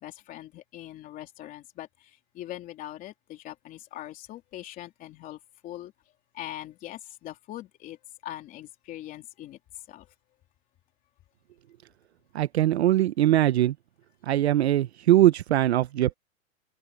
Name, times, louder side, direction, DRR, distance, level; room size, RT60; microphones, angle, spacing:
voice 1, 0.0-5.9 6.3-8.0 8.2-9.6 9.9-10.1, left 14 dB, 20° left, 3.4 m, -41 dB
voice 2, 12.3-13.7 14.3-16.1, right 13 dB, 50° right, 0.8 m, -21 dB
open air
hypercardioid pair, 165°, 41 cm